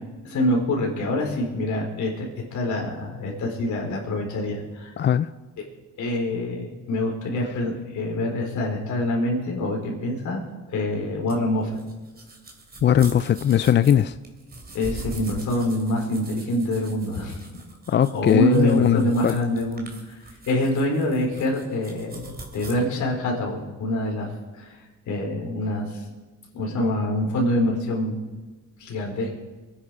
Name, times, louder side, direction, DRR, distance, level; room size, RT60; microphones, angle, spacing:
voice 1, 0.2-4.9 6.0-10.4 10.7-11.8 14.7-17.4 17.9-20.2 20.5-24.3 24.6-24.8 25.1-26.0 26.5-28.2 28.8-29.4, left 1 dB, 70° left, 4.3 m, -25 dB
voice 2, 5.0-5.3 12.8-14.1 17.9-19.4, left 9 dB, 40° left, 0.4 m, -19 dB
sound 1, 11.3-22.7, right 3 dB, 30° right, 3.1 m, -42 dB
23.0 x 10.0 x 4.9 m
cardioid pair, 90°, 30 cm